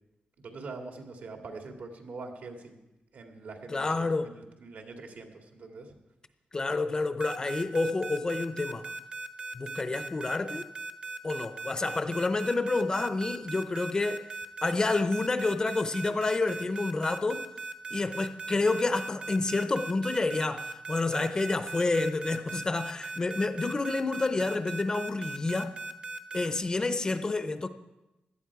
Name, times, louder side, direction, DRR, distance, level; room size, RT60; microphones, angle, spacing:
voice 1, 0.4-2.8 3.1-5.9, right 3 dB, 70° right, 2.0 m, -44 dB
voice 2, 3.7-4.3 6.5-8.9 9.5-10.7 11.2-14.2 14.6-17.4 17.9-25.7 26.3-27.7, left 3 dB, 25° left, 0.6 m, -29 dB
sound 1, 7.2-26.5, right 3 dB, 35° right, 0.9 m, -38 dB
17.0 x 12.0 x 4.8 m
wide cardioid pair, 180°, 3 cm